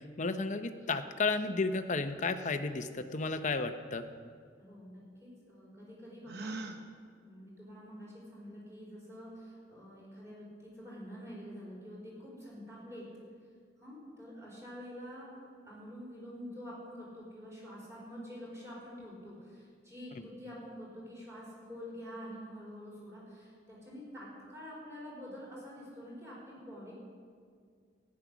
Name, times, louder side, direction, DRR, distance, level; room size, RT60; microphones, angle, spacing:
voice 1, 0.2-4.1, left 3 dB, 40° left, 9 dB, 0.6 m, -33 dB
voice 2, 4.6-6.6 7.2-13.1 13.8-26.9, equal, 15° right, -5 dB, 4.1 m, -47 dB
Gasp, 6.2-6.8, right 3 dB, 55° right, 0.9 m, -40 dB
13.5 x 9.7 x 6.1 m, 2.1 s
head